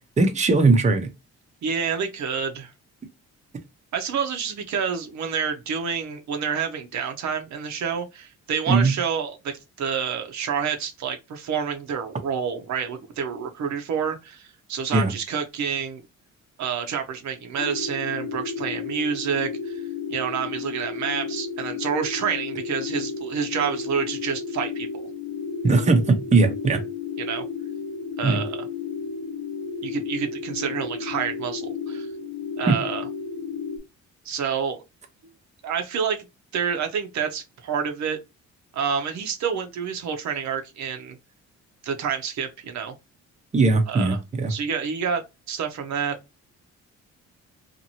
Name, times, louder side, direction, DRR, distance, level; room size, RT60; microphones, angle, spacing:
voice 1, 0.2-1.1 8.7-8.9 14.9-15.1 25.6-26.8 28.2-28.4 32.7-32.8 43.5-44.5, right 3 dB, 25° right, 0.7 m, -19 dB
voice 2, 1.6-2.7 3.9-16.0 16.6-19.8 20.1-25.1 27.2-27.4 28.2-28.7 29.8-32.1 32.6-33.1 34.2-34.8 35.6-36.2 36.5-38.2 38.7-41.2 41.8-42.9 43.9-44.2 44.5-46.2, right 7 dB, 70° right, 0.7 m, -28 dB
sound 1, 17.6-33.8, left 5 dB, 65° left, 0.8 m, -33 dB
2.8 x 2.5 x 2.7 m
cardioid pair, 90°, 30 cm